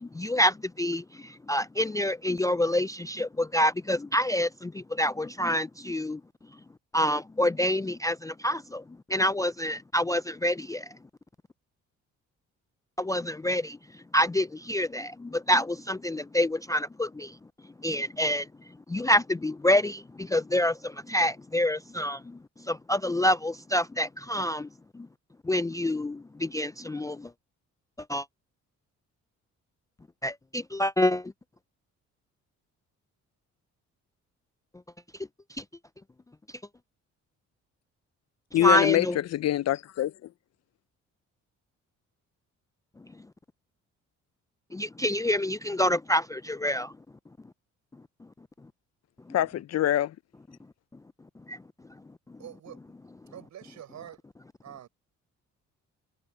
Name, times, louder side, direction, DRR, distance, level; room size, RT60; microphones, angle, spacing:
voice 1, 0.0-6.2 6.9-8.8 9.1-10.9 13.0-13.8 14.1-17.4 17.8-18.5 18.9-22.4 22.6-24.7 24.9-25.1 25.4-27.3 28.1-28.3 30.2-31.3 38.6-39.2 44.7-46.9 51.5-51.6, left 1 dB, 10° left, 0.4 m, -27 dB
voice 2, 38.5-40.1 49.3-50.1, left 13 dB, 60° left, 0.6 m, -25 dB
voice 3, 52.4-52.9 53.3-54.2 54.6-54.9, right 10 dB, 65° right, 5.2 m, -45 dB
cardioid pair, 90°, 30 cm